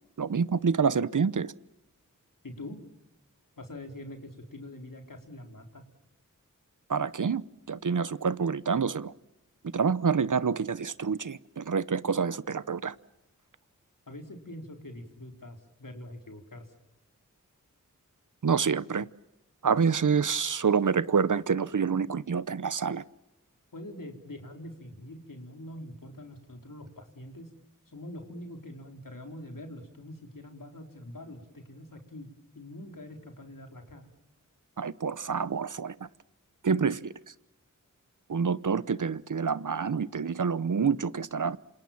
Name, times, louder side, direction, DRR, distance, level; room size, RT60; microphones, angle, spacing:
voice 1, 0.2-1.5 6.9-9.1 9.7-12.9 18.4-19.1 19.6-23.0 34.8-36.0 36.6-37.1 38.3-41.6, right 6 dB, 65° right, 0.9 m, -27 dB
voice 2, 2.4-2.8 3.6-5.8 14.1-16.7 23.7-27.5 27.9-32.3 32.5-34.1, left 1 dB, 75° left, 4.1 m, -44 dB
27.5 x 27.0 x 7.3 m
wide cardioid pair, 50°, 33 cm